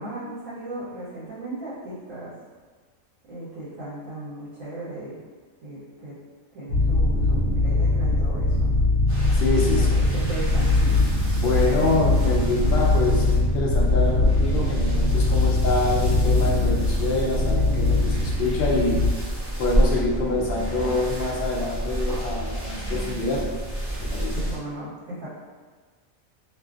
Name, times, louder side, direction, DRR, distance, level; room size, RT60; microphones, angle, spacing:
voice 1, 0.0-2.3 3.3-5.2 5.6-6.1 6.5-8.8 9.7-11.0 11.9-12.5 24.3-25.3, right 1 dB, 70° right, -11 dB, 1.2 m, -36 dB
sound 1, 6.7-19.1, left 2 dB, 90° right, 1.1 m, -22 dB
sound 2, 9.1-24.6, right 1 dB, 20° right, 0.4 m, -29 dB
voice 2, 9.3-10.0 11.4-19.0 19.6-23.5 24.0-24.5, left 2 dB, 65° left, -3 dB, 0.5 m, -26 dB
2.5 x 2.5 x 2.3 m, 1.5 s
omnidirectional pair, 1.4 m